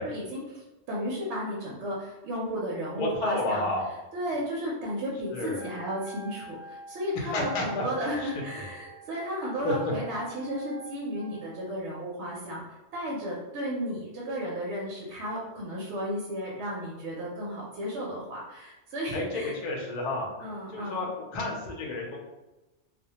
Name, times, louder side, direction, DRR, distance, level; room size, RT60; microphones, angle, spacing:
voice 1, 0.0-3.7 4.1-19.6 20.4-21.1, equal, 80° right, -4 dB, 0.9 m, -34 dB
voice 2, 3.0-3.9 5.3-5.6 7.1-7.8 8.2-8.3 9.6-9.7 19.1-20.3 20.7-22.2, left 2 dB, 50° left, 0 dB, 0.5 m, -31 dB
Wind instrument woodwind instrument, 5.5-11.7, right 2 dB, 75° left, 0.9 m, -47 dB
2.1 x 2.1 x 2.8 m, 1.0 s
omnidirectional pair, 1.2 m